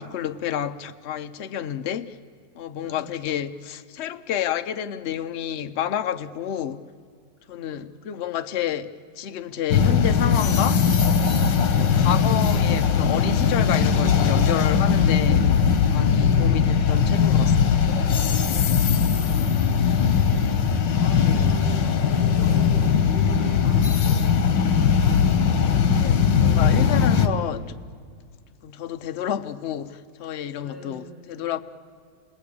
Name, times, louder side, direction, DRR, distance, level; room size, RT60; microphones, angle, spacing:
voice 1, 0.0-2.1 2.6-6.9 7.5-8.9 9.2-10.8 11.7-15.5 15.9-17.8 20.9-21.5 26.0-27.8 28.6-31.6, left 10 dB, 55° left, 0.7 m, -29 dB
voice 2, 2.7-3.2 7.5-7.8 8.1-8.6 10.7-10.8 11.4-11.9 16.0-16.8 19.2-25.3 30.6-31.4, right 2 dB, 30° right, 7.8 m, -42 dB
sound 1, 9.7-27.3, left 6 dB, 85° left, 1.8 m, -20 dB
29.5 x 19.5 x 8.5 m
omnidirectional pair, 1.9 m